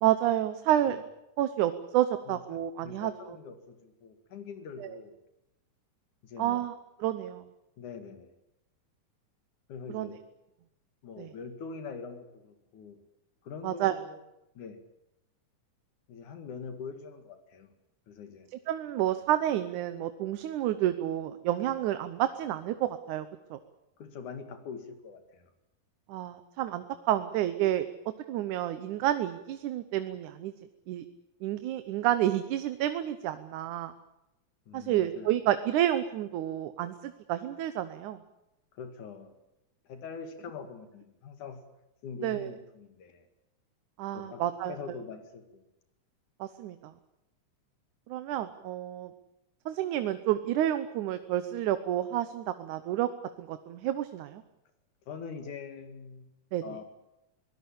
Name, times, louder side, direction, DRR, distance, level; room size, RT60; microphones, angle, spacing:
voice 1, 0.0-1.0 1.4-3.1 4.8-4.9 6.4-6.7 7.0-7.4 9.9-10.1 11.2-11.3 13.6-14.0 18.7-23.6 26.1-27.9 28.3-30.5 30.9-31.1 31.4-33.9 34.7-38.2 42.2-42.5 44.0-44.8 46.4-46.9 48.1-49.1 49.7-53.1 53.4-54.4 56.5-56.6, right 12 dB, 75° right, 11 dB, 2.3 m, -29 dB
voice 2, 2.3-5.2 6.2-6.7 7.8-8.3 9.7-10.2 11.0-13.0 13.4-14.2 14.6-14.8 16.1-17.7 18.1-18.5 24.0-25.5 34.7-35.3 38.7-39.3 39.9-41.6 42.0-43.3 44.1-45.6 55.1-56.3 56.6-56.8, left 5 dB, 70° left, 8 dB, 3.5 m, -43 dB
23.5 x 18.0 x 8.5 m, 0.90 s
omnidirectional pair, 3.6 m